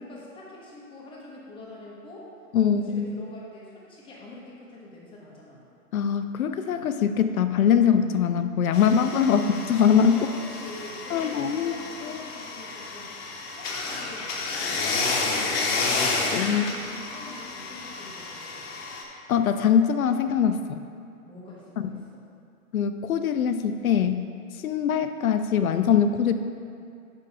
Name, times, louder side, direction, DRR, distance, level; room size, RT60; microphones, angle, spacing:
voice 1, 0.0-2.3 2.6-5.6 9.2-9.3 10.1-18.6 21.2-22.2, left 2 dB, 10° left, -4 dB, 1.0 m, -45 dB
voice 2, 2.5-3.2 5.9-9.4 9.7-10.2 11.1-11.7 12.0-12.2 16.3-16.6 19.3-20.8 22.7-24.2 24.6-26.3, left 8 dB, 70° left, 9 dB, 0.6 m, -22 dB
sound 1, 8.7-19.0, left 3 dB, 45° left, 1.1 m, -31 dB
5.5 x 5.3 x 5.4 m, 2.3 s
hypercardioid pair, 130°, 44 cm